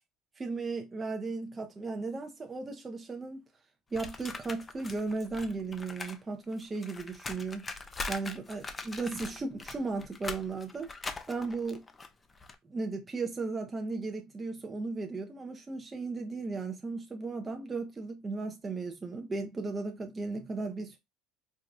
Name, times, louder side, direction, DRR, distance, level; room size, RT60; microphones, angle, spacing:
voice 1, 0.4-3.4 3.9-7.7 8.1-10.9 11.3-11.8 12.7-21.0, right 3 dB, 20° right, 0.7 m, -36 dB
sound 1, 3.9-6.2 6.4-12.5, left 3 dB, 20° left, 0.6 m, -42 dB
4.6 x 2.3 x 2.6 m
supercardioid pair, 100°, 0 cm